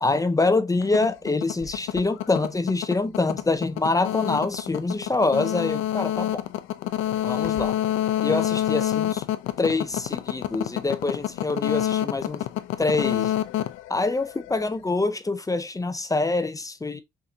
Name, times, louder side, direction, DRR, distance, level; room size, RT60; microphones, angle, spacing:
voice 1, 0.0-6.4 7.2-7.8 8.2-9.2 9.6-12.5 12.8-13.3 13.9-17.0, left 3 dB, 15° left, 0.5 m, -25 dB
sound 1, 0.8-14.7, left 12 dB, 85° left, 0.5 m, -27 dB
5.8 x 2.6 x 2.8 m
cardioid pair, 90°, 20 cm